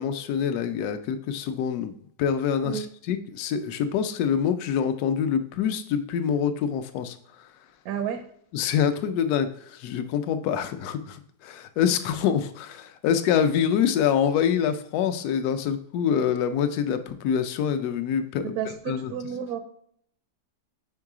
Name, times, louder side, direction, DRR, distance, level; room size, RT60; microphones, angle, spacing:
voice 1, 0.0-1.9 2.2-7.2 8.5-18.4 18.9-19.1, left 8 dB, 75° left, 9 dB, 1.0 m, -25 dB
voice 2, 7.8-8.2 18.4-19.6, right 8 dB, 70° right, 7 dB, 0.9 m, -31 dB
4.6 x 4.5 x 4.8 m, 0.66 s
omnidirectional pair, 1.8 m